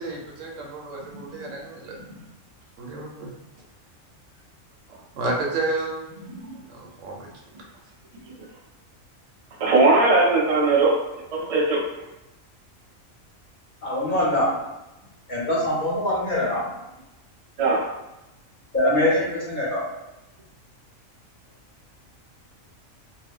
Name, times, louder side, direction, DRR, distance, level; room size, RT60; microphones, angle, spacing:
voice 1, 0.0-1.9 2.8-3.3 5.2-6.1 6.7-7.3, right 2 dB, 70° right, -1 dB, 1.0 m, -30 dB
voice 2, 9.6-10.9 11.3-11.8 17.6-17.9, right 3 dB, 45° right, -2 dB, 0.4 m, -19 dB
voice 3, 13.8-14.5 15.3-16.6 18.7-19.8, left 1 dB, 35° left, -7 dB, 1.2 m, -23 dB
2.7 x 2.3 x 3.5 m, 0.96 s
omnidirectional pair, 1.4 m